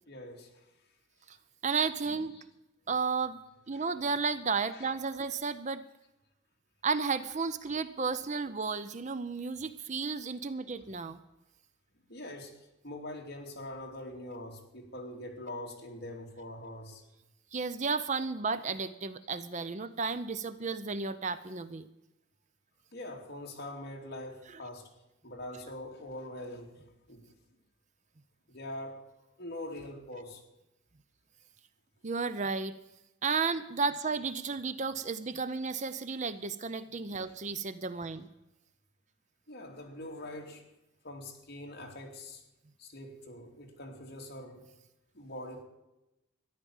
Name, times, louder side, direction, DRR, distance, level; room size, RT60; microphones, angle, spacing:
voice 1, 0.1-0.6 2.0-2.4 3.7-4.0 4.7-4.9 10.6-10.7 12.1-17.0 22.9-24.9 25.2-27.3 28.5-29.0 29.4-30.4 34.0-34.1 37.2-37.3 39.5-40.6 41.0-42.4 42.8-44.7 45.1-45.6, left 1 dB, 50° left, 1 dB, 2.8 m, -44 dB
voice 2, 1.6-2.4 2.9-3.4 3.7-5.8 6.8-11.2 17.5-21.9 32.0-32.7 33.2-38.3, right 4 dB, 35° right, 12 dB, 0.6 m, -33 dB
13.5 x 10.5 x 7.2 m, 0.93 s
head